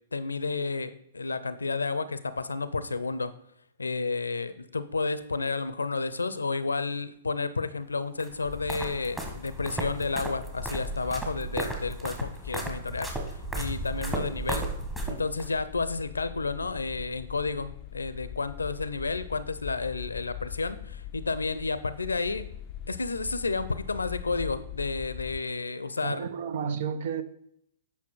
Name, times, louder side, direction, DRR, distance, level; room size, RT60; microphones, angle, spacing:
voice 1, 0.1-3.3 3.8-14.7 15.1-22.5 22.9-26.3, left 4 dB, 80° left, 0.6 m, -31 dB
sound 1, 8.2-15.5, right 2 dB, 10° right, 1.6 m, -35 dB
sound 2, 8.4-25.4, left 11 dB, 35° left, 0.5 m, -42 dB
voice 2, 26.0-27.2, right 7 dB, 55° right, 0.8 m, -32 dB
8.6 x 5.7 x 4.5 m
figure-of-eight pair, 115°, 0 cm